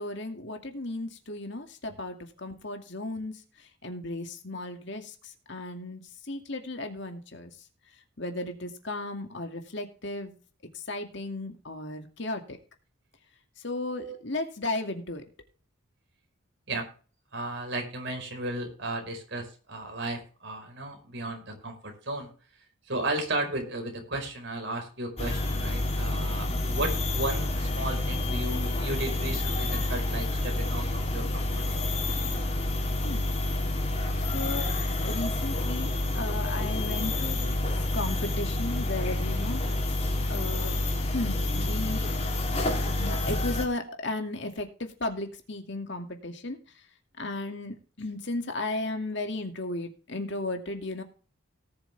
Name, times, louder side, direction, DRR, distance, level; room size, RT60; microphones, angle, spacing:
voice 1, 0.0-3.4 3.8-5.1 5.5-6.0 6.3-7.5 8.2-10.3 10.9-12.6 13.6-15.2 27.8-27.9 33.0-33.3 34.3-34.7 35.0-37.6 37.9-39.6 40.3-40.8 41.1-42.1 43.0-46.6 47.2-51.0, left 2 dB, 55° left, 4 dB, 2.3 m, -35 dB
voice 2, 17.3-22.3 22.9-31.9 34.6-34.7 43.9-44.0, right 2 dB, 55° right, 2 dB, 4.7 m, -34 dB
sound 1, 25.2-43.7, left 2 dB, 30° left, 2.9 m, -28 dB
18.5 x 7.1 x 3.4 m, 0.38 s
head